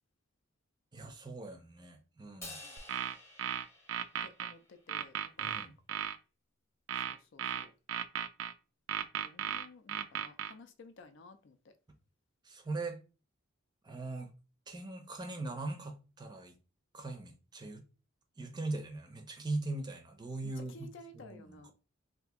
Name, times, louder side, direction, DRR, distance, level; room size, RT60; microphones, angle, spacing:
voice 1, 0.9-2.6 5.4-5.7 12.4-13.0 13.8-14.3 14.7-16.5 16.9-17.8 18.4-21.6, right 2 dB, 20° right, 0.5 m, -40 dB
Crash cymbal, 2.4-4.8, left 2 dB, 15° left, 0.8 m, -51 dB
sound 1, 2.8-4.5 4.9-6.2 6.9-8.5 8.9-10.5, right 9 dB, 70° right, 0.3 m, -36 dB
voice 2, 4.2-6.1 7.0-7.7 9.2-11.7 20.4-21.7, left 3 dB, 60° left, 0.4 m, -55 dB
2.8 x 2.5 x 3.5 m
head